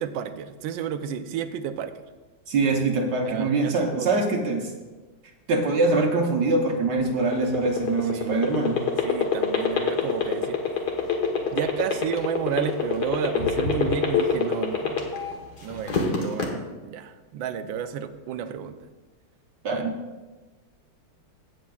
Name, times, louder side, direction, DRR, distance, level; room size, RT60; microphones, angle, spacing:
voice 1, 0.0-1.9 3.2-4.2 8.1-8.5 9.0-10.6 11.5-15.1 15.6-18.8 19.7-19.8, right 8 dB, 80° right, 10 dB, 1.4 m, -31 dB
voice 2, 2.5-4.6 5.5-8.8 19.6-19.9, right 3 dB, 65° right, 1 dB, 1.5 m, -23 dB
sound 1, 7.1-15.3 15.7-16.5, left 8 dB, 60° left, 1.8 m, -23 dB
16.5 x 7.6 x 2.3 m, 1.2 s
omnidirectional pair, 2.1 m